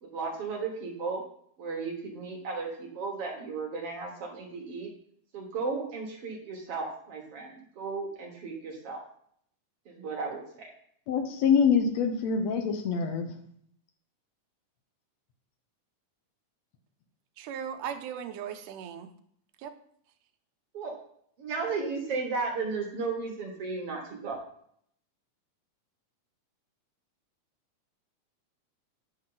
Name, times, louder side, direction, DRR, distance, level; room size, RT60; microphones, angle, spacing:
voice 1, 0.0-1.2 1.6-4.9 5.3-9.0 9.9-10.7 20.7-20.9 21.4-24.4, right 4 dB, 55° right, 2.0 m, -35 dB
voice 2, 11.1-13.3, left 6 dB, 70° left, 1.9 m, -25 dB
voice 3, 17.4-19.1 19.6-19.7, right 8 dB, 80° right, 2.2 m, -37 dB
10.0 x 6.4 x 3.8 m
omnidirectional pair, 3.7 m